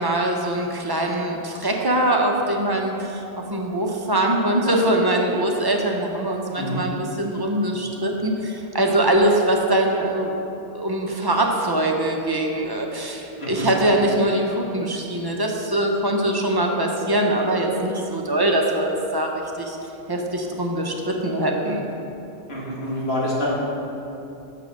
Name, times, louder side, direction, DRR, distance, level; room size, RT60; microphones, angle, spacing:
voice 1, 0.0-3.2 3.5-10.4 10.7-19.3 19.6-19.8 20.1-21.8, right 1 dB, 25° right, 0 dB, 0.6 m, -22 dB
voice 2, 22.5-23.5, left 1 dB, 60° left, -6 dB, 1.9 m, -26 dB
6.7 x 6.3 x 5.9 m, 2.8 s
omnidirectional pair, 1.2 m